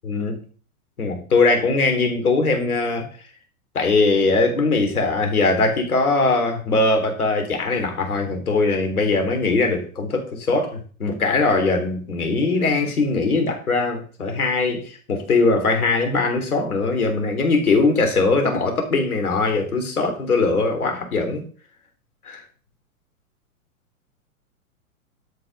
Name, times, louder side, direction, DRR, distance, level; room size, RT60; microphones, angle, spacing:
voice 1, 0.1-0.5 1.0-3.1 3.7-21.4 22.2-22.4, left 3 dB, 85° left, 3.8 m, -21 dB
12.0 x 5.8 x 5.5 m
hypercardioid pair, 115°, 43 cm